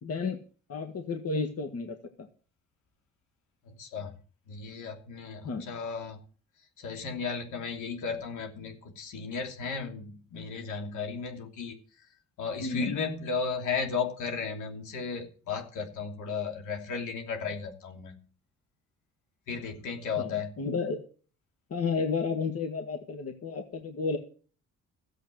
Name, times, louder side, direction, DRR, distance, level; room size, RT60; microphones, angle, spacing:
voice 1, 0.0-0.4 0.7-2.3 5.4-5.7 12.6-13.0 20.2-20.3 20.6-21.0 21.7-24.2, left 4 dB, 55° left, 6 dB, 1.8 m, -32 dB
voice 2, 3.8-4.1 4.5-6.2 6.8-11.7 12.4-18.2 19.5-20.5, left 5 dB, 85° left, 4 dB, 2.9 m, -35 dB
14.0 x 7.8 x 7.7 m, 0.41 s
cardioid pair, 90°, 30 cm